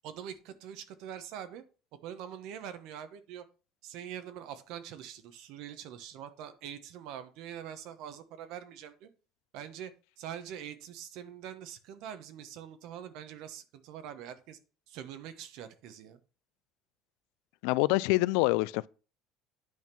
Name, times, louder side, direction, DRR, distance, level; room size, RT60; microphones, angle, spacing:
voice 1, 0.0-1.6 2.0-3.4 3.8-9.1 9.5-9.9 10.2-14.6 14.9-16.2, right 9 dB, 60° right, 1.0 m, -44 dB
voice 2, 17.6-18.9, left 21 dB, 90° left, 0.3 m, -26 dB
9.4 x 3.6 x 6.0 m
cardioid pair, 175°, 0 cm